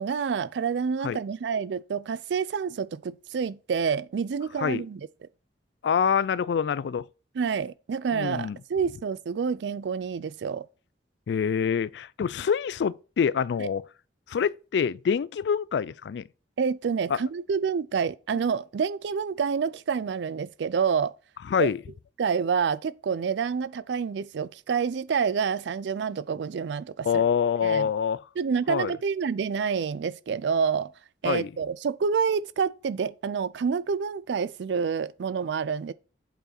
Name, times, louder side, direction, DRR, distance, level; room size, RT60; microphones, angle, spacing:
voice 1, 0.0-5.0 7.4-10.7 13.6-13.7 16.6-21.1 21.6-21.7 22.2-27.2 27.6-27.9 28.4-30.9 31.2-35.9, right 6 dB, 75° right, 0.4 m, -28 dB
voice 2, 5.8-7.0 8.1-8.6 11.3-13.8 14.3-16.2 17.1-17.2 21.5-21.8 27.0-28.2 28.7-28.9 31.2-31.5, left 7 dB, 70° left, 0.3 m, -26 dB
8.0 x 4.7 x 4.3 m
head